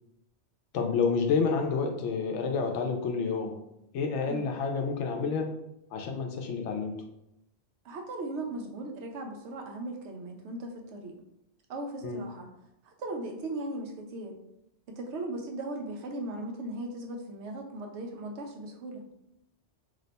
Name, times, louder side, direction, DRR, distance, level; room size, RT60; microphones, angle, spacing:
voice 1, 0.7-3.6 3.9-5.5 5.9-7.0 12.0-12.2, left 5 dB, 90° left, 4 dB, 0.9 m, -29 dB
voice 2, 7.8-11.2 11.7-12.5 12.8-14.4 14.9-19.0, right 2 dB, 80° right, 2 dB, 0.9 m, -38 dB
2.8 x 2.1 x 3.9 m, 0.84 s
omnidirectional pair, 1.2 m